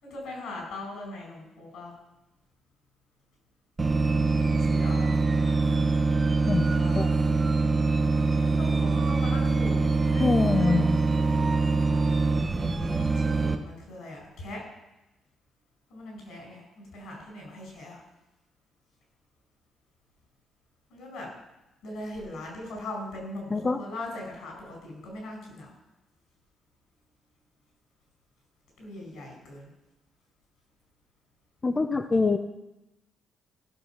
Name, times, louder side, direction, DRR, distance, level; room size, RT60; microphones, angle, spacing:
voice 1, 0.0-2.0 4.4-5.9 6.5-7.1 8.4-10.9 11.1-12.0 13.0-14.6 15.9-18.0 20.9-21.3 21.8-25.7 28.8-29.7, left 1 dB, 80° left, 0 dB, 5.4 m, -40 dB
sound 1, 3.8-13.6, right 3 dB, 25° right, 1.1 m, -24 dB
voice 2, 10.2-11.0 23.5-23.8 31.6-32.4, left 3 dB, 30° left, 7 dB, 0.6 m, -24 dB
15.5 x 6.3 x 5.8 m, 0.96 s
cardioid pair, 90°, 0 cm